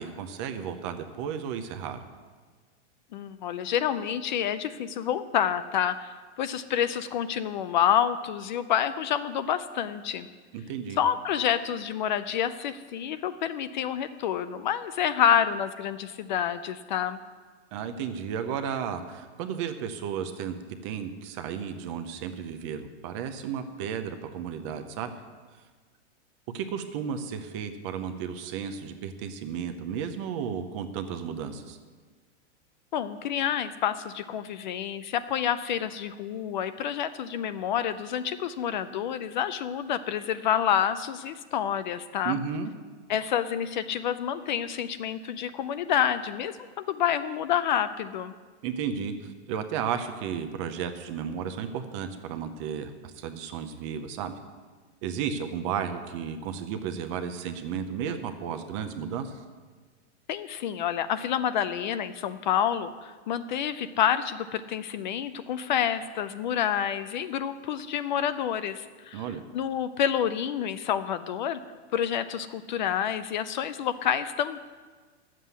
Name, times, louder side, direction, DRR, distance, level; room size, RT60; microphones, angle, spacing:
voice 1, 0.0-2.0 10.5-11.0 17.7-20.5 20.8-25.1 26.5-31.8 42.2-42.7 48.6-54.4 55.0-59.4 69.1-69.4, right 7 dB, 25° right, 9 dB, 0.6 m, -33 dB
voice 2, 3.1-6.1 6.4-10.3 11.0-17.2 32.9-42.4 43.1-48.3 60.3-69.2 69.5-71.6 71.9-74.6, left 9 dB, 45° left, 12 dB, 0.4 m, -28 dB
11.0 x 7.5 x 8.1 m, 1.4 s
supercardioid pair, 165°, 35 cm